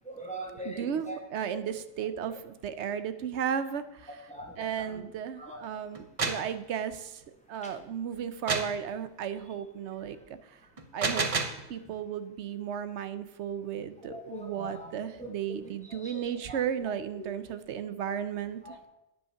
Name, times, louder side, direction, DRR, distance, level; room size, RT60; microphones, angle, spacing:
voice 1, 0.1-1.2 2.2-2.3 4.3-5.0 5.4-5.6 7.6-7.7 14.1-15.3 15.9-16.6 17.1-17.3 18.6-18.9, right 1 dB, 5° left, 0 dB, 1.7 m, -42 dB
voice 2, 0.6-4.3 4.6-10.2 10.4-10.6 10.9-11.3 11.7-18.6, right 8 dB, 85° right, 12 dB, 1.0 m, -34 dB
sound 1, 6.0-6.5 8.5-8.8 10.8-11.6, right 4 dB, 35° right, 0.7 m, -29 dB
9.5 x 5.6 x 5.7 m, 0.92 s
omnidirectional pair, 1.1 m